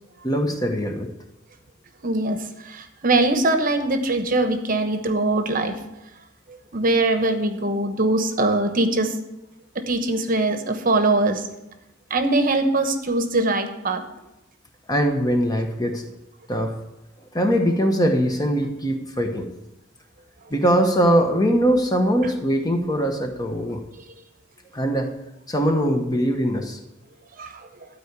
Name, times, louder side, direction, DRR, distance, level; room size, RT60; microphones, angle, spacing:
voice 1, 0.2-1.1 14.9-16.0 16.5-16.8 17.3-19.5 20.5-23.8 24.7-25.1 25.5-26.8, equal, 20° left, 4 dB, 1.1 m, -21 dB
voice 2, 2.0-5.7 6.7-9.1 9.7-11.5 12.1-14.0 27.4-27.5, right 2 dB, 40° right, 7 dB, 1.0 m, -22 dB
12.5 x 4.7 x 8.2 m, 0.92 s
head